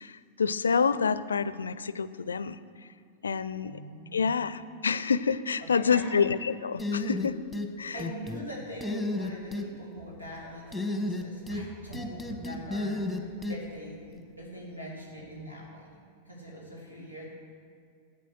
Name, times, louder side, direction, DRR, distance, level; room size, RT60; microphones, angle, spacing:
voice 1, 0.0-2.6 3.2-3.8 4.1-7.4 7.8-8.0, left 6 dB, 70° left, 15 dB, 0.4 m, -28 dB
voice 2, 3.6-4.5 5.6-6.2 7.9-15.9 16.3-17.3, right 1 dB, 85° right, -4 dB, 3.5 m, -42 dB
sound 1, 6.8-7.7 8.0-8.4 8.8-9.7 10.7-11.7 11.9-13.6, left 2 dB, ahead, 1.2 m, -32 dB
13.0 x 8.5 x 6.4 m, 2.3 s
figure-of-eight pair, 90°, 0 cm